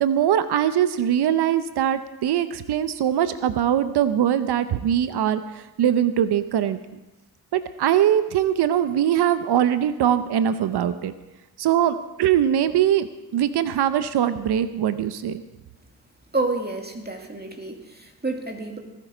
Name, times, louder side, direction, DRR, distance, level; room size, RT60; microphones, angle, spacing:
voice 1, 0.0-6.8 7.5-11.1 11.6-15.4, right 10 dB, 80° right, 12 dB, 0.8 m, -22 dB
voice 2, 16.3-18.8, right 2 dB, 25° right, 3 dB, 2.2 m, -29 dB
21.0 x 7.5 x 5.1 m, 1.0 s
cardioid pair, 50°, 39 cm